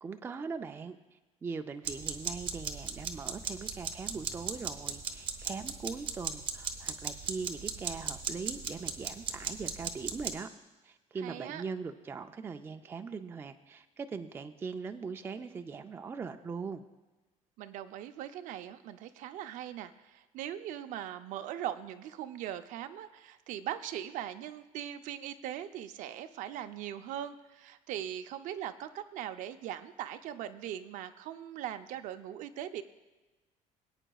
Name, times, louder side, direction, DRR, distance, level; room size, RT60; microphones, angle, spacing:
voice 1, 0.0-10.5 10.8-16.8, right 5 dB, 15° right, 7 dB, 0.3 m, -41 dB
sound 1, 1.8-10.3, right 6 dB, 40° right, 0.8 m, -37 dB
voice 2, 11.2-11.6 17.6-32.8, right 11 dB, 65° right, 9 dB, 0.5 m, -40 dB
22.0 x 8.9 x 2.3 m, 1.2 s
cardioid pair, 165°, 14 cm